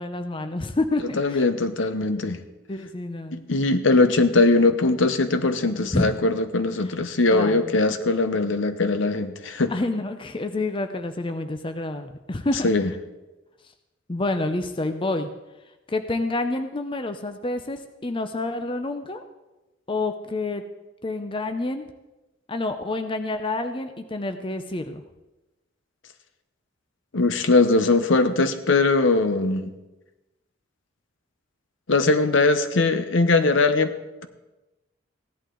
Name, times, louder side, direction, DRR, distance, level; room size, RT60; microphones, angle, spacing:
voice 1, 0.0-1.4 2.7-3.5 5.9-6.3 7.3-7.8 9.7-12.6 14.1-15.3 15.9-19.2 19.9-20.6 21.0-21.8 22.5-25.0, left 2 dB, 25° left, 8 dB, 0.6 m, -28 dB
voice 2, 1.2-2.4 3.3-9.7 12.6-12.9 27.1-29.7 31.9-33.9, left 3 dB, 65° left, 10 dB, 0.8 m, -21 dB
16.0 x 11.0 x 3.8 m, 1.1 s
head